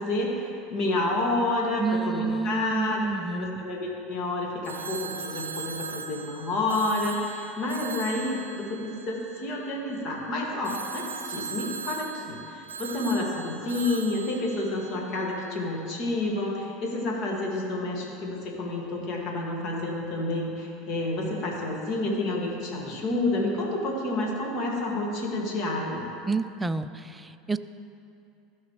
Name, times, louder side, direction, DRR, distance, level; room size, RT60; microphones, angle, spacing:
voice 1, 0.0-3.0 3.3-26.1, left 2 dB, 50° left, -2 dB, 2.1 m, -29 dB
voice 2, 1.8-3.6 26.3-27.6, right 4 dB, 10° right, 11 dB, 0.4 m, -29 dB
Telephone, 4.6-9.9 10.6-15.5, right 5 dB, 90° right, 0.4 m, -39 dB
15.0 x 5.9 x 3.2 m, 2.6 s
hypercardioid pair, 80°, 0 cm